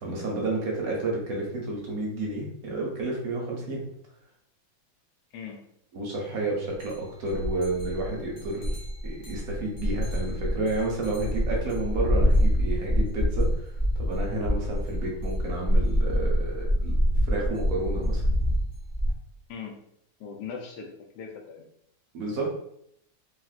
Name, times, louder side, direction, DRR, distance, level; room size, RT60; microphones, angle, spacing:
voice 1, 0.0-3.8 5.9-8.8 9.0-13.7 14.0-17.0 17.3-18.2 22.1-22.5, right 2 dB, 60° right, -2 dB, 1.0 m, -31 dB
voice 2, 5.3-5.7 19.5-19.8 20.2-20.9 21.1-21.6, left 6 dB, 75° left, 2 dB, 1.1 m, -39 dB
sound 1, 6.8-6.9 7.3-19.1, equal, 55° left, 0.7 m, -26 dB
3.5 x 2.4 x 2.4 m, 0.71 s
omnidirectional pair, 2.0 m